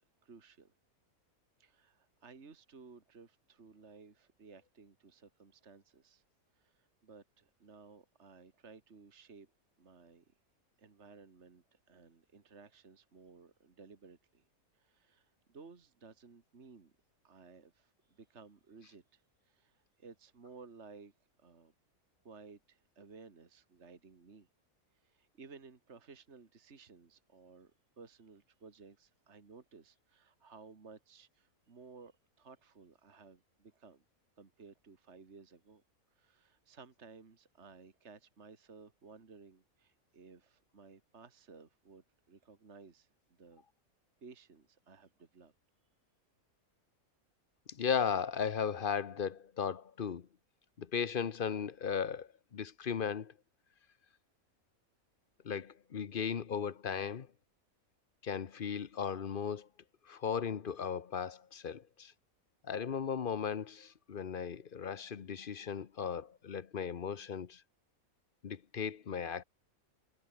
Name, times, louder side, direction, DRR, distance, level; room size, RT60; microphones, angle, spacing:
voice 1, 0.2-0.7 1.6-6.2 6.5-9.5 9.8-10.3 10.8-14.5 14.7-16.9 17.2-21.1 21.4-21.7 22.2-24.5 24.9-34.0 34.4-35.8 36.1-43.1 43.4-43.6 44.2-45.5, right 4 dB, 50° right, 2.2 m, -57 dB
voice 2, 47.7-50.3 50.8-53.3 55.4-57.3 58.2-59.7 60.1-62.1 62.6-67.6 68.4-69.4, left 7 dB, 45° left, 0.9 m, -36 dB
omnidirectional pair, 1.5 m